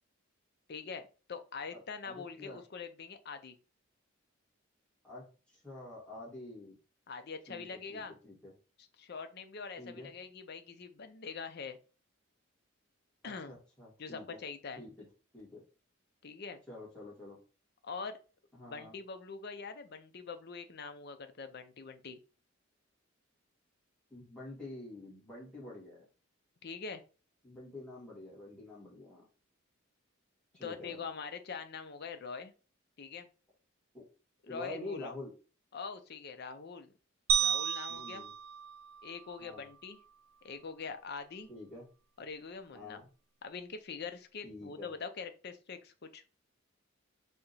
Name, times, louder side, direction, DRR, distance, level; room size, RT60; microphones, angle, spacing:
voice 1, 0.7-3.6 7.1-8.1 9.0-11.8 13.2-13.6 14.0-14.8 16.2-16.6 17.8-18.2 18.7-22.2 26.6-27.0 30.6-32.5 33.0-33.3 34.4-35.1 35.7-36.9 37.4-38.2 39.0-40.0 40.4-41.5 42.2-43.0 43.4-46.2, left 5 dB, 50° left, 9 dB, 0.5 m, -43 dB
voice 2, 1.7-2.6 5.0-5.2 5.5-6.8 7.5-8.5 9.8-10.1 13.5-14.4 14.8-14.9 15.3-15.6 16.7-17.4 18.5-18.9 24.1-26.0 27.4-29.2 30.5-31.1 33.9-34.1 34.5-35.3 37.9-38.3 39.4-39.7 41.5-41.8 42.7-43.1 44.4-44.9, left 2 dB, 5° left, -6 dB, 2.0 m, -47 dB
sound 1, 37.3-39.7, right 8 dB, 80° right, 0.4 m, -33 dB
3.5 x 2.9 x 4.0 m, 0.35 s
head